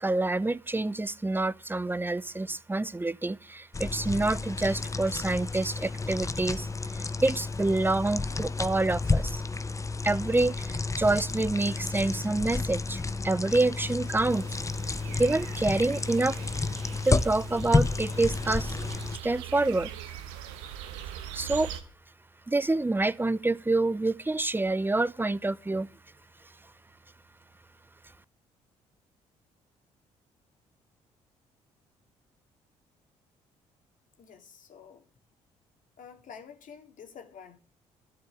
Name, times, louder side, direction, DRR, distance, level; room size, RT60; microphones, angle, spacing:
voice 1, 0.0-9.4 10.0-14.6 15.2-16.4 17.0-18.9 19.2-19.9 21.3-21.7 22.5-25.9, right 2 dB, 15° right, 0.7 m, -27 dB
sound 1, 3.7-19.2, left 3 dB, 20° left, 0.8 m, -31 dB
sound 2, 14.3-21.8, right 10 dB, 85° right, 1.2 m, -42 dB
voice 2, 34.2-35.1 36.0-37.6, left 7 dB, 60° left, 2.6 m, -48 dB
12.5 x 8.0 x 7.0 m
hypercardioid pair, 55°, 15 cm